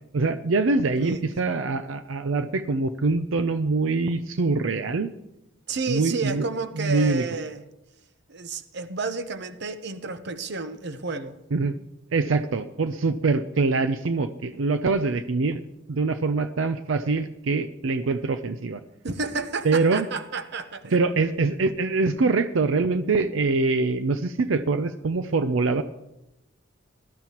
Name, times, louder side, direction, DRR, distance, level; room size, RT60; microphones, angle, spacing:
voice 1, 0.1-5.1 5.9-6.5 6.7-7.3 11.5-11.8 12.1-15.6 15.9-18.8 19.6-20.1 20.9-25.8, right 3 dB, 85° right, 11 dB, 0.5 m, -24 dB
voice 2, 5.7-7.6 8.3-11.4 19.0-21.0, right 4 dB, 60° right, 10 dB, 0.9 m, -31 dB
18.0 x 12.5 x 3.0 m, 0.92 s
head